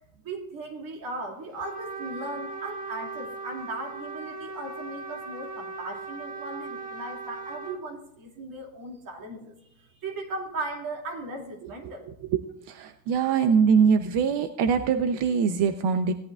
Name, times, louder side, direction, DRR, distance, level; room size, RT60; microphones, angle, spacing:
voice 1, 0.2-9.6 10.0-12.1, right 2 dB, 55° right, 2 dB, 2.7 m, -37 dB
Trumpet, 1.6-7.8, right 3 dB, 20° right, 1.5 m, -38 dB
voice 2, 11.6-11.9 12.3-12.4 12.7-16.1, right 6 dB, 90° right, 8 dB, 0.9 m, -23 dB
17.5 x 10.5 x 2.5 m, 0.77 s
cardioid pair, 175°, 40 cm